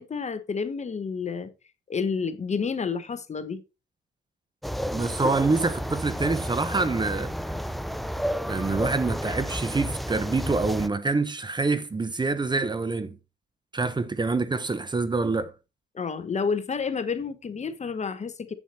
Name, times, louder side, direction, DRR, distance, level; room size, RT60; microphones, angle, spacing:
voice 1, 0.0-1.5 1.9-3.6 15.9-18.5, left 5 dB, 35° left, 1.0 m, -30 dB
sound 1, 4.6-10.9, equal, ahead, 0.5 m, -31 dB
voice 2, 4.9-7.3 8.5-13.2 13.7-15.5, right 3 dB, 20° right, 1.0 m, -26 dB
8.3 x 7.2 x 4.2 m
cardioid pair, 90°, 20 cm